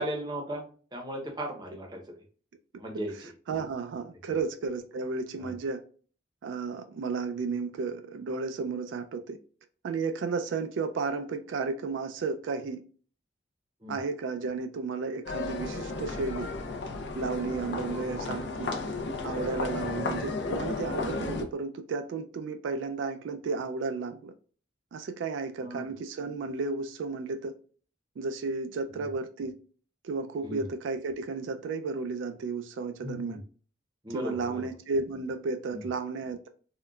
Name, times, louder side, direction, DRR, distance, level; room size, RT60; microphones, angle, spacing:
voice 1, 0.0-2.0 2.8-3.3 4.3-4.4 5.4-5.5 13.8-14.0 25.6-25.9 30.4-30.6 33.0-33.4 34.0-34.7 35.7-35.9, right 1 dB, 25° right, 0.6 m, -36 dB
voice 2, 3.5-5.8 6.4-9.4 9.8-12.8 13.9-16.5 17.1-18.7 19.2-24.3 24.9-27.5 28.2-29.6 30.0-33.4 34.1-36.5, right 4 dB, 85° right, 0.3 m, -33 dB
sound 1, 15.3-21.5, left 3 dB, 70° left, 0.4 m, -33 dB
3.7 x 2.1 x 2.2 m
head